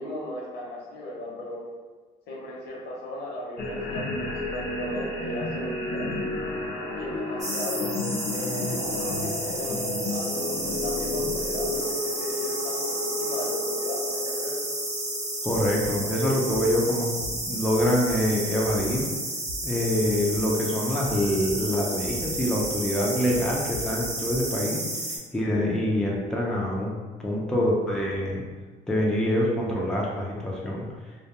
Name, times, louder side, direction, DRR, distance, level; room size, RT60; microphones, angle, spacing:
voice 1, 0.0-1.6 2.3-6.2 6.9-14.6, left 1 dB, 80° left, -4 dB, 0.8 m, -37 dB
sound 1, 3.6-16.3, left 2 dB, 60° left, 0.5 m, -32 dB
sound 2, 7.4-25.2, right 1 dB, 20° right, 0.8 m, -32 dB
voice 2, 15.4-19.1 19.6-24.8 25.1-26.9 27.2-28.4 28.9-30.8, equal, 5° left, -3 dB, 0.4 m, -25 dB
sound 3, 15.5-15.9 16.5-16.7 17.2-17.3 17.8-18.1 18.6-19.0 19.5-19.6 20.0-20.4 21.0-21.5 22.0-22.7 23.3-24.4, right 1 dB, 65° right, 0.5 m, -41 dB
2.3 x 2.2 x 2.8 m, 1.4 s
cardioid pair, 110°, 17 cm